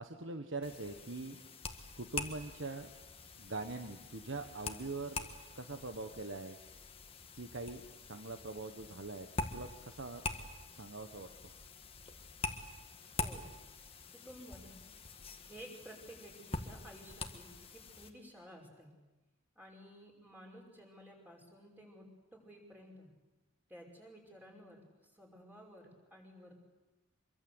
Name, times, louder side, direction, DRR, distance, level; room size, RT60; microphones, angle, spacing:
voice 1, 0.0-1.4 2.0-2.9 3.4-6.6 7.3-10.2 10.7-11.3, right 3 dB, 65° right, 6 dB, 1.3 m, -43 dB
sound 1, 0.6-18.1, left 3 dB, 25° left, 1.7 m, -45 dB
voice 2, 13.1-13.5 14.1-14.8 15.4-18.9 19.6-22.1 22.3-23.1 23.7-26.6, equal, 10° right, -1 dB, 5.5 m, -54 dB
25.5 x 23.5 x 8.0 m, 1.1 s
head